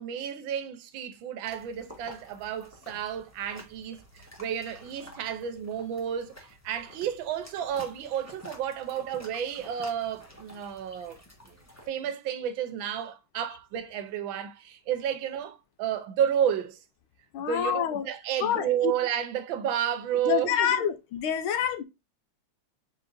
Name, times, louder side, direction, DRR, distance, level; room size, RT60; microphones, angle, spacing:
voice 1, 0.0-11.2 11.4-11.6 11.9-16.8 17.5-20.9, right 9 dB, 75° right, 1.3 m, -31 dB
sound 1, 1.4-11.9, equal, 10° left, 0.8 m, -50 dB
voice 2, 17.3-18.1 18.4-19.0 20.2-21.8, left 9 dB, 85° left, 1.5 m, -27 dB
4.2 x 3.9 x 2.5 m
omnidirectional pair, 2.3 m